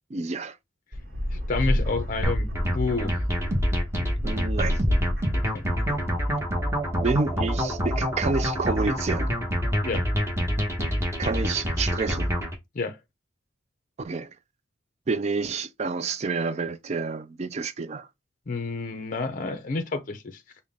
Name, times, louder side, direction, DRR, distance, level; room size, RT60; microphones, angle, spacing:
voice 1, 0.1-0.6 4.2-4.8 7.0-9.3 11.2-12.3 14.0-14.4 15.1-18.1, right 4 dB, 35° right, 0.4 m, -29 dB
sound 1, 0.9-6.4, equal, 50° right, 1.1 m, -30 dB
voice 2, 1.3-2.5 2.7-3.1 5.3-5.6 9.8-10.1 12.7-13.0 18.5-20.4, left 3 dB, 45° left, 0.5 m, -29 dB
sound 2, 2.2-12.5, equal, 15° right, 1.0 m, -27 dB
5.4 x 2.1 x 3.5 m
head